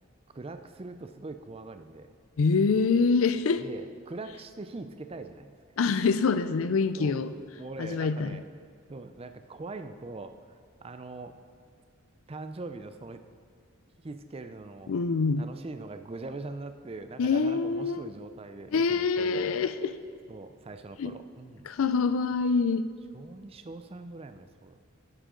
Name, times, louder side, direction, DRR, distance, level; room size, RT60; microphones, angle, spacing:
voice 1, 0.3-2.1 3.6-5.5 7.0-7.2 7.5-8.4 8.9-11.4 12.3-13.2 14.0-14.9 15.4-19.5 20.3-21.7 23.1-24.8, right 3 dB, 25° right, 9 dB, 0.4 m, -42 dB
voice 2, 2.4-3.6 5.8-7.3 7.8-8.4 14.9-15.5 17.2-18.1 18.7-19.9 21.0-21.1 21.7-22.9, left 4 dB, 70° left, 12 dB, 0.4 m, -25 dB
10.5 x 9.8 x 3.8 m, 2.2 s
head